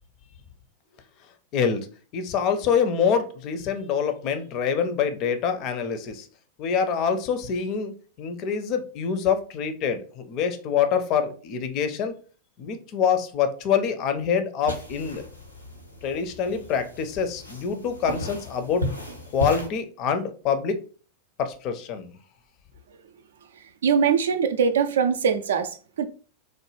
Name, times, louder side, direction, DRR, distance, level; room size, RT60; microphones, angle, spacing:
voice 1, 1.5-1.9 2.1-6.3 6.6-7.9 8.2-12.1 12.6-15.3 16.0-18.9 19.3-20.8 21.4-22.1, left 7 dB, 40° left, 0.5 m, -25 dB
sound 1, 14.6-19.7, left 1 dB, 85° left, 0.6 m, -35 dB
voice 2, 23.8-26.1, right 6 dB, 65° right, 0.3 m, -22 dB
3.1 x 2.1 x 3.1 m
figure-of-eight pair, 90°, 0 cm